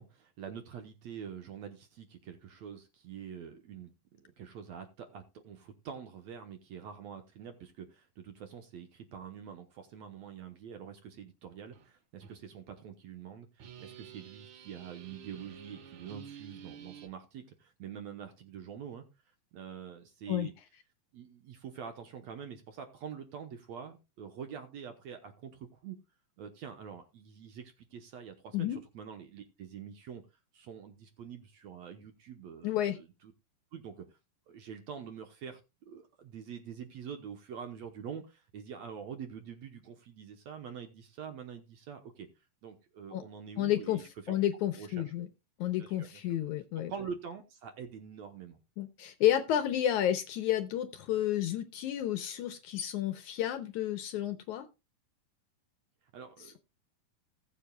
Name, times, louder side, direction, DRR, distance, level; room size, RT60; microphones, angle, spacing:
voice 1, 0.0-19.0 19.5-20.5 21.1-26.0 26.4-30.2 30.5-33.3 33.7-34.2 34.5-42.3 42.6-44.4 44.8-45.1 45.8-46.3 46.9-48.6 56.1-56.6, right 7 dB, 65° right, 6 dB, 1.9 m, -46 dB
sound 1, 11.7-11.9 12.2-12.4 13.6-17.1, right 8 dB, 85° right, 1.1 m, -50 dB
voice 2, 32.6-33.0 43.1-43.2 43.6-45.3 45.6-46.9 48.8-54.7, left 12 dB, 75° left, 9 dB, 1.9 m, -31 dB
19.0 x 7.4 x 2.3 m, 0.26 s
omnidirectional pair, 4.0 m